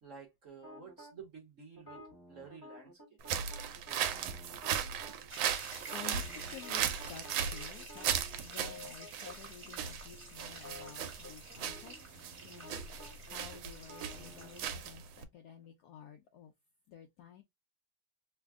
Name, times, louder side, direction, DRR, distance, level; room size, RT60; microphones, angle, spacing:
voice 1, 0.0-3.0 4.0-4.1 4.5-4.7 5.1-5.3 10.7-10.8 12.4-12.6, right 5 dB, 55° right, 0.9 m, -53 dB
sound 1, 0.6-1.1 1.8-5.2 5.8-9.3 9.6-9.8 10.1-14.7, left 1 dB, 15° left, 0.8 m, -52 dB
sound 2, 3.2-15.2, right 9 dB, 85° right, 1.4 m, -37 dB
voice 2, 4.3-5.1 5.5-5.7 5.9-8.1 8.4-12.8 13.3-16.5 16.9-17.4, left 9 dB, 75° left, 0.9 m, -52 dB
sound 3, 5.3-14.8, right 3 dB, 30° right, 1.3 m, -50 dB
3.3 x 2.1 x 3.4 m
omnidirectional pair, 2.1 m